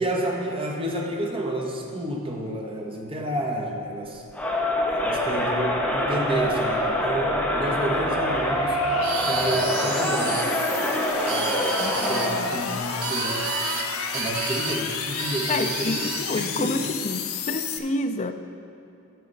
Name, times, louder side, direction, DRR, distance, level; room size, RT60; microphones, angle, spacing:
voice 1, 0.0-4.2 4.9-8.8 9.2-10.4 11.3-13.5 14.1-16.1 16.3-16.8, right 1 dB, 25° right, 0 dB, 1.0 m, -30 dB
sound 1, 4.2-17.8, left 6 dB, 85° left, 0.6 m, -33 dB
Crowd, 4.3-12.5, equal, 5° left, 0.8 m, -25 dB
sound 2, 9.0-10.5 11.1-12.3 13.0-13.9 14.1-14.8 15.2-16.3, right 7 dB, 80° right, 0.6 m, -32 dB
voice 2, 11.8-12.8 15.5-18.3, left 2 dB, 35° left, 8 dB, 0.4 m, -29 dB
9.2 x 4.9 x 6.5 m, 2.8 s
head